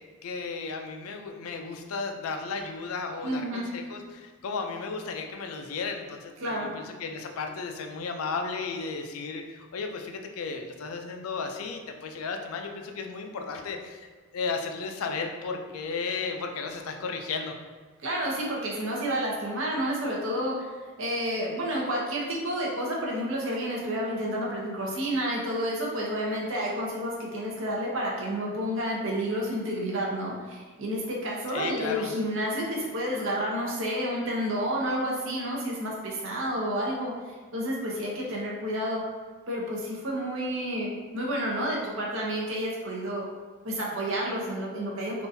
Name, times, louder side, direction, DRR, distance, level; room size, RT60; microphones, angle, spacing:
voice 1, 0.2-17.5 31.5-32.1, left 4 dB, 75° left, 4 dB, 0.4 m, -34 dB
voice 2, 3.2-3.7 6.4-6.8 18.0-20.7 21.0-37.1 37.5-39.0 39.5-43.2 43.6-45.3, equal, 60° right, -3 dB, 0.7 m, -30 dB
3.7 x 2.5 x 2.6 m, 1.5 s
head